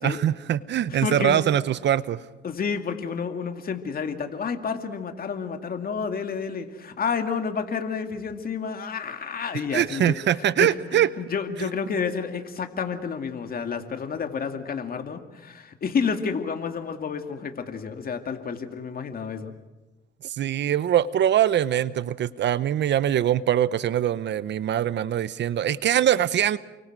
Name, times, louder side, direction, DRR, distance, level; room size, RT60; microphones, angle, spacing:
voice 1, 0.0-2.2 9.7-11.1 20.4-26.6, right 10 dB, 65° right, 17 dB, 0.8 m, -23 dB
voice 2, 0.9-1.4 2.4-19.5, left 6 dB, 50° left, 6 dB, 2.4 m, -30 dB
29.5 x 24.0 x 6.2 m, 1.1 s
cardioid pair, 90°, 20 cm